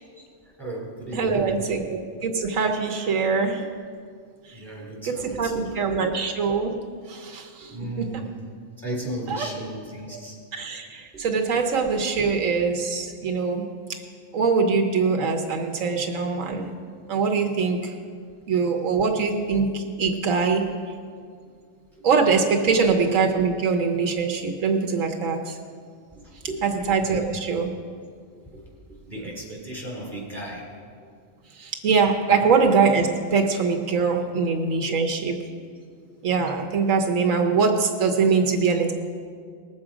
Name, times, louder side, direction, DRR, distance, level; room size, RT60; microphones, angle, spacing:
voice 1, 0.1-1.8 3.7-3.8 4.5-5.9 7.6-8.3 8.8-10.4 11.1-11.3 13.2-13.4 20.5-20.6 21.4-21.5 21.9-22.1 22.7-22.9 26.1-27.3 28.5-28.6 28.9-30.7 30.9-31.1 32.2-32.7 34.2-34.3, right 1 dB, ahead, -4 dB, 3.6 m, -36 dB
voice 2, 1.1-3.6 5.1-6.8 7.1-7.7 9.3-9.5 10.5-13.6 14.3-16.7 17.1-17.9 18.5-20.7 22.0-25.6 26.9-27.7 31.6-35.4 36.2-38.9, right 5 dB, 80° right, 3 dB, 1.3 m, -23 dB
19.5 x 7.5 x 4.9 m, 2.1 s
omnidirectional pair, 1.4 m